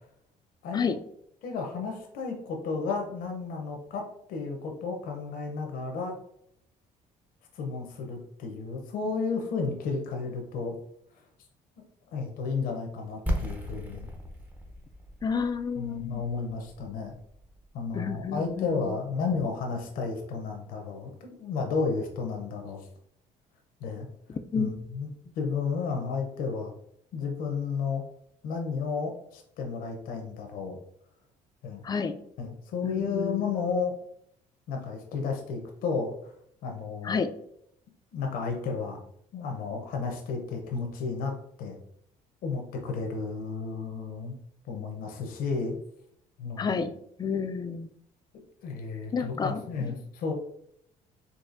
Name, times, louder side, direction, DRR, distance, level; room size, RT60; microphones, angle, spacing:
voice 1, 1.4-6.2 7.5-10.8 12.1-14.1 15.8-17.1 17.7-22.9 23.8-24.1 24.5-26.7 27.1-28.0 28.4-30.8 31.6-31.8 32.4-33.9 34.7-36.3 36.6-37.2 38.1-39.0 39.3-41.8 42.4-44.4 44.7-45.8 46.4-46.7 48.6-50.3, left 4 dB, 75° left, 2 dB, 0.7 m, -32 dB
sound 1, 13.3-19.0, equal, 10° right, 0.7 m, -37 dB
voice 2, 15.2-16.2 17.9-19.0 24.5-24.7 31.8-32.2 32.8-33.5 37.0-37.3 46.6-46.9 47.2-47.9 49.1-49.6, left 5 dB, 25° left, 9 dB, 0.3 m, -30 dB
4.1 x 2.6 x 2.6 m, 0.71 s
cardioid pair, 100°, 15 cm